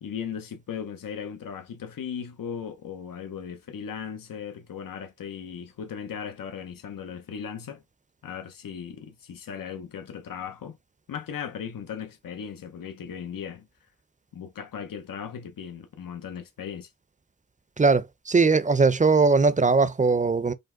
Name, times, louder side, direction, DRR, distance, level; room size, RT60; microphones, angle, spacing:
voice 1, 0.0-7.8 8.2-10.8 11.1-13.7 14.3-16.9, left 7 dB, 85° left, 0.8 m, -37 dB
voice 2, 17.8-20.5, right 4 dB, 25° right, 0.5 m, -20 dB
5.2 x 2.1 x 3.7 m
cardioid pair, 50°, 33 cm